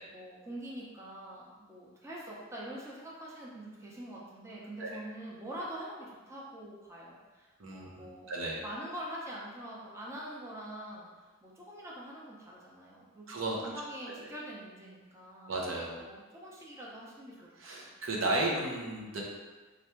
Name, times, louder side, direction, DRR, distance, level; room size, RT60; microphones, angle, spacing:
voice 1, 0.1-8.3 8.6-15.5 16.0-17.4 17.8-17.9, right 1 dB, 15° right, -5 dB, 0.6 m, -44 dB
voice 2, 7.6-8.6 13.3-13.6 15.5-16.0 17.6-19.2, right 2 dB, 80° right, -2 dB, 0.8 m, -34 dB
3.4 x 2.5 x 4.3 m, 1.3 s
head